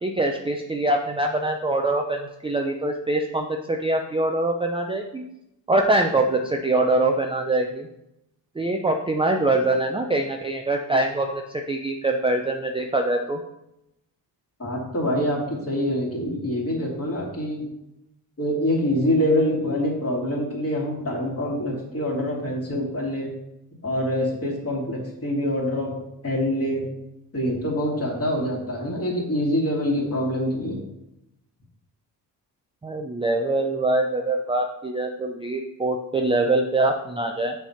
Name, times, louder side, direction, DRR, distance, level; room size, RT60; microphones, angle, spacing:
voice 1, 0.0-5.2 5.7-7.9 8.6-13.4 32.8-37.5, right 2 dB, 15° right, 3 dB, 0.5 m, -24 dB
voice 2, 14.6-17.7 18.4-23.3 23.8-26.0 26.2-26.9 27.3-30.8, left 1 dB, 35° left, -3 dB, 2.4 m, -25 dB
6.1 x 3.4 x 5.6 m, 0.85 s
cardioid pair, 80°, 43 cm